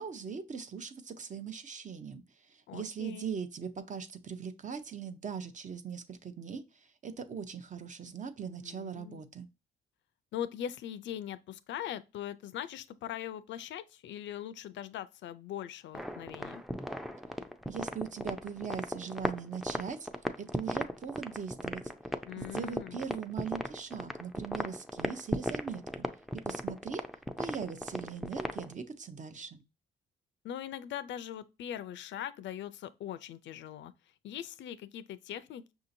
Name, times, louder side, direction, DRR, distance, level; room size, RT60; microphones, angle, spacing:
voice 1, 0.0-9.5 17.7-20.1 20.4-21.8 22.4-25.8 26.5-27.0 27.4-29.6, right 6 dB, 40° right, 0.7 m, -40 dB
voice 2, 2.7-3.3 8.6-9.2 10.3-16.6 22.2-23.0 30.4-33.9 34.2-35.7, left 10 dB, 70° left, 0.4 m, -41 dB
sound 1, 15.9-28.7, equal, ahead, 0.4 m, -36 dB
5.7 x 2.8 x 2.6 m
cardioid pair, 90°, 20 cm